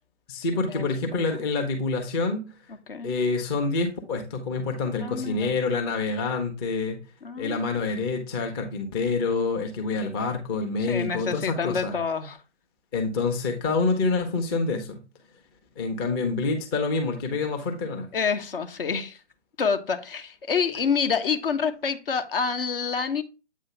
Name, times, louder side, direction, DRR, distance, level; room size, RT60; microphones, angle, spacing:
voice 1, 0.3-2.5 3.0-7.0 7.4-11.9 12.9-15.0 15.8-18.1, left 3 dB, 20° left, 0.8 m, -27 dB
voice 2, 5.0-5.6 7.2-7.6 10.9-12.4 18.1-19.2 19.6-23.2, left 6 dB, 50° left, 1.1 m, -27 dB
8.2 x 2.8 x 5.6 m
figure-of-eight pair, 140°, 35 cm